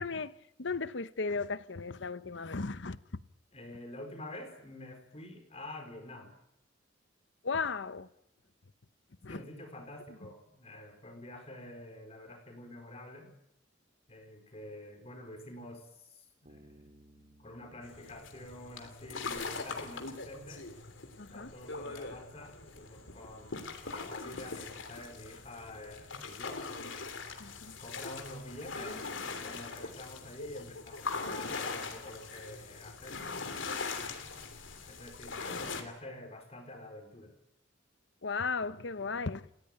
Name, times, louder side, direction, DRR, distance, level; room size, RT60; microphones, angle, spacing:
voice 1, 0.0-3.0 7.4-8.1 9.2-9.4 21.2-21.5 27.4-27.8 38.2-39.5, left 4 dB, 65° left, 0.9 m, -36 dB
voice 2, 3.5-6.3 9.3-13.3 14.1-16.9 17.2-20.7 21.3-26.6 27.8-33.3 34.1-37.3, left 1 dB, 35° left, 4.6 m, -48 dB
Bass guitar, 16.5-19.9, right 1 dB, 40° right, 2.3 m, -62 dB
sound 1, 17.8-35.8, left 4 dB, 85° left, 3.2 m, -41 dB
29.0 x 16.5 x 9.2 m
head